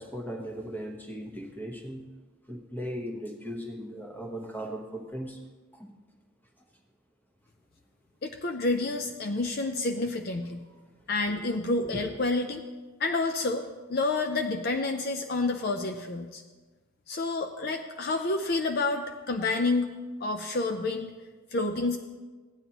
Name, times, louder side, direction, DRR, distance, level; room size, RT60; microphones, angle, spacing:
voice 1, 0.0-2.1 2.5-5.4 5.8-5.9 11.8-12.0, equal, 10° left, 2 dB, 1.1 m, -37 dB
voice 2, 8.2-10.6 11.1-12.6 13.0-16.4 17.1-19.9 20.2-21.1 21.5-22.0, left 3 dB, 45° left, 5 dB, 0.5 m, -29 dB
15.5 x 9.7 x 3.0 m, 1.3 s
head